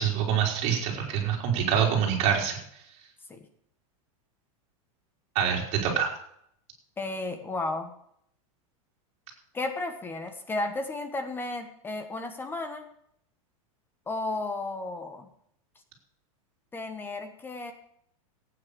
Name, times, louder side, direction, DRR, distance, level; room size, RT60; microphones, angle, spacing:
voice 1, 0.0-2.6 5.3-6.1, right 8 dB, 35° right, 0 dB, 4.2 m, -25 dB
voice 2, 7.0-7.9 9.5-12.9 14.1-15.3 16.7-17.7, left 2 dB, 10° left, 7 dB, 1.3 m, -33 dB
14.5 x 9.2 x 6.8 m, 0.69 s
supercardioid pair, 155°, 18 cm